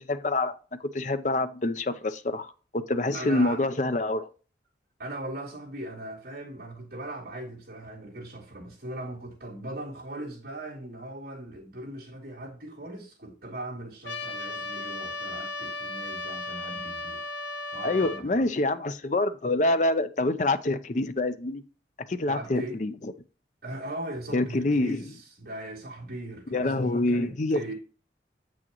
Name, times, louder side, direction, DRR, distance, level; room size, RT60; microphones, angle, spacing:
voice 1, 0.0-4.3 17.8-21.6 22.1-23.1 24.3-25.0 26.5-27.7, left 2 dB, 40° left, 0.5 m, -26 dB
voice 2, 3.1-3.6 5.0-17.2 17.7-18.5 22.3-22.8 23.6-27.7, right 1 dB, 55° right, 3.4 m, -39 dB
Trumpet, 14.0-18.2, left 2 dB, 90° left, 1.0 m, -35 dB
7.8 x 6.2 x 3.0 m
head